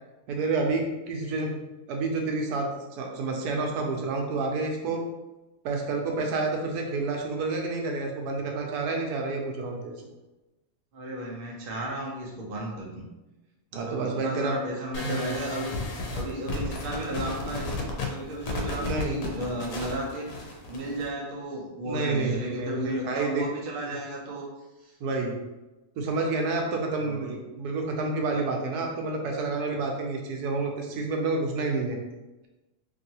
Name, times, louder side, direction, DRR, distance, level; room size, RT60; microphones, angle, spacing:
voice 1, 0.3-1.6 1.9-5.1 5.6-9.9 13.7-14.5 15.0-15.3 18.8-19.2 21.8-23.4 23.9-24.0 25.0-25.4 26.0-32.0, right 3 dB, 80° right, 1 dB, 1.1 m, -29 dB
voice 2, 10.9-13.1 13.7-15.8 16.1-17.7 18.1-24.5 24.8-25.0 27.0-27.3, right 1 dB, 55° right, -2 dB, 0.6 m, -34 dB
sound 1, 14.9-21.1, left 2 dB, 85° left, 1.2 m, -33 dB
3.0 x 2.6 x 2.7 m, 1.0 s
omnidirectional pair, 1.7 m